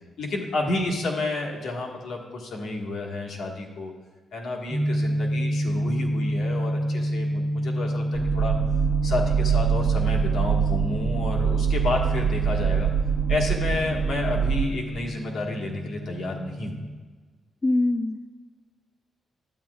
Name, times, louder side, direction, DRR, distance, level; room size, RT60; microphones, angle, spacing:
voice 1, 0.2-3.9 4.3-8.5 9.0-12.9 13.3-16.8, left 2 dB, 70° left, -1 dB, 1.5 m, -30 dB
sound 1, 4.7-17.0, equal, 5° right, 1.0 m, -29 dB
sound 2, 8.1-14.7, right 8 dB, 55° right, 0.3 m, -24 dB
voice 2, 17.6-18.3, left 2 dB, 25° left, 8 dB, 0.3 m, -23 dB
12.0 x 9.0 x 2.4 m, 1.4 s
cardioid pair, 120°, 0 cm